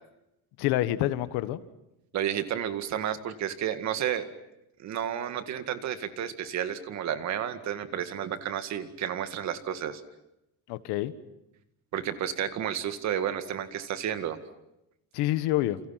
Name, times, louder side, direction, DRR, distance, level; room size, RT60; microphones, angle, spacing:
voice 1, 0.6-1.6 10.7-11.1 15.1-15.8, left 15 dB, 80° left, 12 dB, 1.6 m, -27 dB
voice 2, 2.1-4.2 4.8-10.0 11.9-14.4, right 9 dB, 45° right, 9 dB, 2.0 m, -31 dB
29.0 x 29.0 x 5.9 m, 0.87 s
cardioid pair, 175°, 39 cm